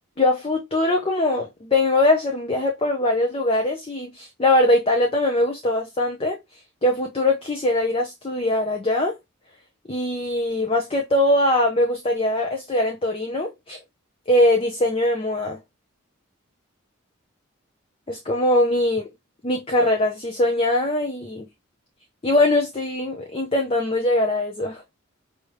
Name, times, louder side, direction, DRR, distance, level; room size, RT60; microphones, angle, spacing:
voice 1, 0.2-6.4 6.8-9.2 9.9-13.8 14.3-15.6 18.1-19.1 19.4-21.5 22.2-24.8, left 1 dB, 25° left, 0.6 m, -21 dB
4.8 x 2.8 x 3.2 m
head